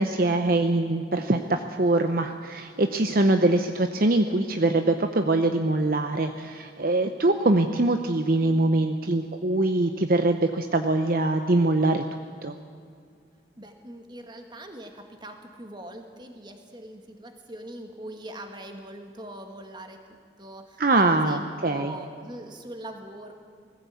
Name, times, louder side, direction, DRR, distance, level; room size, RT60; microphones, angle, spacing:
voice 1, 0.0-12.0 12.4-12.6 20.8-21.9, right 2 dB, 50° right, 7 dB, 0.8 m, -23 dB
voice 2, 13.6-23.3, right 1 dB, 25° right, 5 dB, 1.8 m, -42 dB
19.5 x 15.5 x 8.5 m, 2.2 s
head